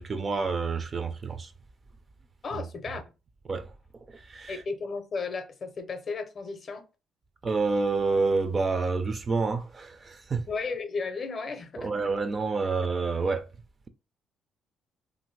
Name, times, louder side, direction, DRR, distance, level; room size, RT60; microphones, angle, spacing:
voice 1, 0.0-1.5 2.5-2.6 3.5-4.6 7.4-10.5 11.8-13.5, right 4 dB, 30° right, 0.4 m, -28 dB
voice 2, 2.4-3.0 4.5-6.8 10.5-11.9, left 4 dB, 40° left, 0.5 m, -34 dB
2.7 x 2.5 x 3.1 m
cardioid pair, 120°, 0 cm